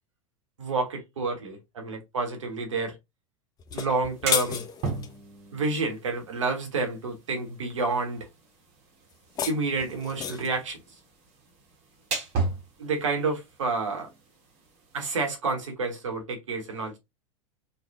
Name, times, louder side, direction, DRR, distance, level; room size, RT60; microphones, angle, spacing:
voice 1, 0.6-2.9 3.7-4.6 5.5-8.3 9.5-10.8 12.8-14.1 14.9-17.0, right 3 dB, 70° right, 1.0 m, -29 dB
sound 1, 3.6-5.1 9.1-10.6, left 8 dB, 25° left, 0.4 m, -32 dB
sound 2, 3.9-15.2, right 3 dB, 40° right, 1.0 m, -38 dB
3.2 x 2.2 x 2.5 m
figure-of-eight pair, 80°, 17 cm